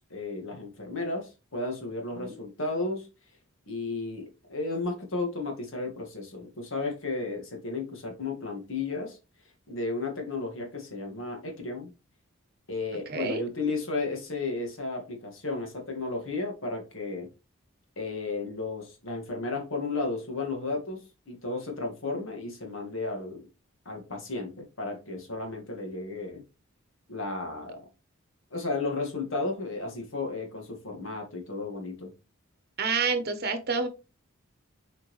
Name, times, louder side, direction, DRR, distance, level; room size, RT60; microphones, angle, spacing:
voice 1, 0.0-3.1 3.7-9.2 9.7-11.9 12.7-17.3 18.0-23.4 23.9-26.4 27.1-27.8 28.5-32.1, left 3 dB, 60° left, 2.0 m, -33 dB
voice 2, 13.1-13.4 32.8-33.9, right 4 dB, 45° right, 1.1 m, -28 dB
6.7 x 4.5 x 3.2 m
head